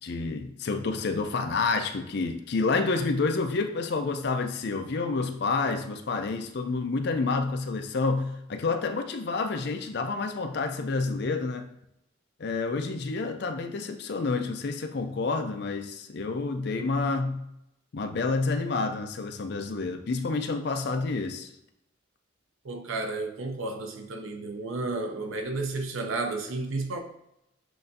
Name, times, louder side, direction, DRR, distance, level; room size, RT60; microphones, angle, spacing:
voice 1, 0.0-11.7 12.4-17.4 17.9-21.5, left 3 dB, 55° left, 7 dB, 0.4 m, -29 dB
voice 2, 22.6-27.0, right 3 dB, 85° right, 4 dB, 0.7 m, -32 dB
7.6 x 2.5 x 2.6 m, 0.82 s
head